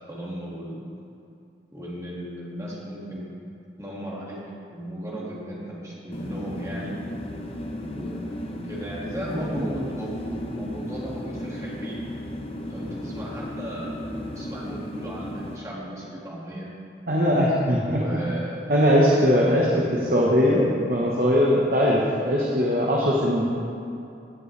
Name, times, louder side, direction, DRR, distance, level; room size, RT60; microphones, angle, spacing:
voice 1, 0.1-0.8 1.7-3.3 3.8-4.4 4.7-7.0 7.9-12.0 12.7-14.0 14.4-16.7 17.9-18.6 19.7-19.8 23.4-23.5, right 1 dB, 20° right, -5 dB, 2.0 m, -35 dB
sound 1, 6.1-15.6, left 1 dB, 35° left, 0.7 m, -34 dB
voice 2, 17.1-18.0 18.7-23.5, equal, 50° right, -4 dB, 1.1 m, -20 dB
16.5 x 7.6 x 3.3 m, 2.7 s
head